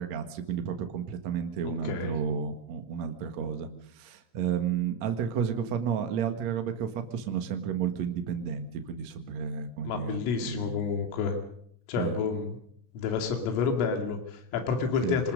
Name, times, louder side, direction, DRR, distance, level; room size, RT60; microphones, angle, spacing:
voice 1, 0.0-3.7 4.0-10.8 12.0-12.2 15.0-15.2, right 7 dB, 60° right, 6 dB, 1.8 m, -32 dB
voice 2, 1.6-2.2 9.8-11.4 11.9-12.6 12.9-15.3, left 5 dB, 75° left, 4 dB, 4.9 m, -29 dB
26.0 x 20.0 x 5.3 m, 0.66 s
omnidirectional pair, 5.9 m